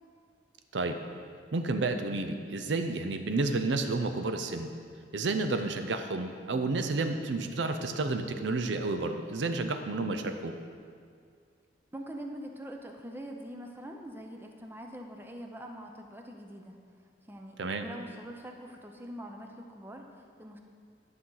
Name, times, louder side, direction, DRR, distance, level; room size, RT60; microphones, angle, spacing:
voice 1, 1.5-4.7 5.1-10.5 17.6-17.9, right 3 dB, 75° right, 7 dB, 0.6 m, -31 dB
voice 2, 11.9-16.8 17.3-20.6, equal, 10° right, 3 dB, 0.6 m, -44 dB
11.0 x 5.7 x 3.9 m, 2.2 s
head